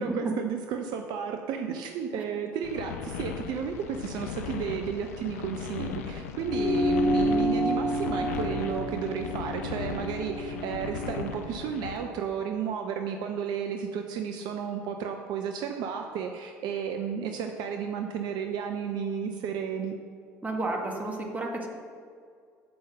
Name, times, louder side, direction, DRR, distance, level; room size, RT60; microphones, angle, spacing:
voice 1, 0.0-19.9, right 7 dB, 60° right, 5 dB, 0.5 m, -33 dB
sound 1, 2.6-12.0, left 7 dB, 80° left, 0.5 m, -37 dB
sound 2, 6.4-11.2, equal, 15° left, 1.0 m, -29 dB
voice 2, 20.4-21.7, right 2 dB, 20° right, 0 dB, 1.7 m, -32 dB
6.9 x 5.4 x 6.3 m, 2.2 s
hypercardioid pair, 60°, 8 cm